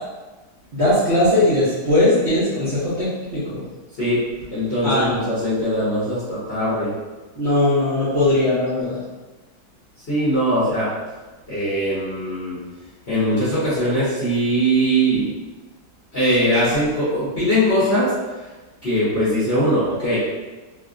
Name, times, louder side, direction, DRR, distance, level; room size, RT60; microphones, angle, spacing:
voice 1, 0.7-3.6 4.8-5.2 7.4-9.0, left 1 dB, 50° right, -13 dB, 0.8 m, -19 dB
voice 2, 4.5-6.9 10.1-10.9 11.5-12.6 13.1-15.3 16.1-18.1 18.8-20.2, equal, 40° left, -12 dB, 0.9 m, -21 dB
3.3 x 2.4 x 2.5 m, 1.2 s
omnidirectional pair, 2.1 m